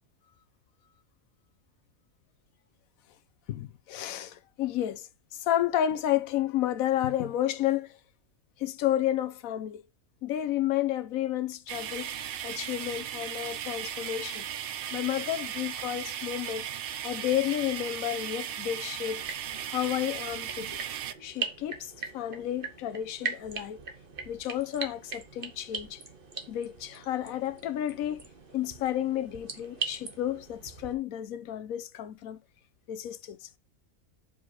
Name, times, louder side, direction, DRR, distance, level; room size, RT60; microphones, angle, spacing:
voice 1, 3.5-8.0 8.6-9.8 10.2-12.1 12.4-14.4 14.9-16.6 17.0-19.2 19.7-20.8 21.2-23.8 24.3-26.0 26.5-28.2 28.5-32.4 32.9-33.6, left 12 dB, 85° left, 1.1 m, -31 dB
sound 1, 11.7-21.1, right 10 dB, 60° right, 0.6 m, -37 dB
sound 2, 19.2-30.9, right 4 dB, 45° right, 1.2 m, -40 dB
5.2 x 4.7 x 6.2 m
omnidirectional pair, 1.4 m